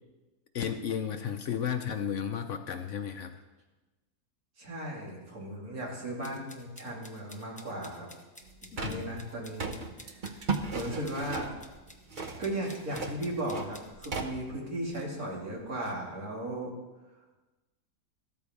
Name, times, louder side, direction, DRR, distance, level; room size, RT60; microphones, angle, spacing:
voice 1, 0.5-3.3 8.8-9.1, left 8 dB, 60° left, 7 dB, 0.9 m, -33 dB
voice 2, 4.6-8.1 8.8-11.5 12.4-16.7, right 1 dB, 70° right, -2 dB, 2.9 m, -36 dB
sound 1, 6.2-14.1, left 1 dB, 5° left, 0.7 m, -52 dB
sound 2, 8.4-15.9, right 4 dB, 40° right, 0.8 m, -38 dB
13.5 x 13.0 x 3.6 m, 1.2 s
omnidirectional pair, 1.6 m